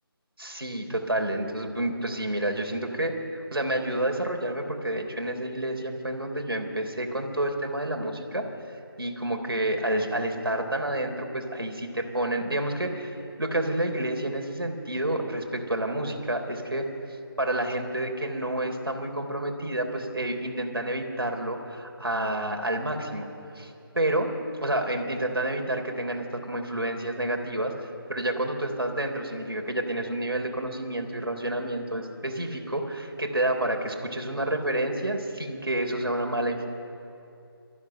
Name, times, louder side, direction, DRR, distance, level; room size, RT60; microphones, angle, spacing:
voice 1, 0.4-16.9 17.4-23.3 23.6-24.3 24.6-27.7 28.1-36.7, right 1 dB, 70° right, 3 dB, 3.6 m, -29 dB
27.5 x 14.5 x 6.6 m, 2.7 s
figure-of-eight pair, 160°, 13 cm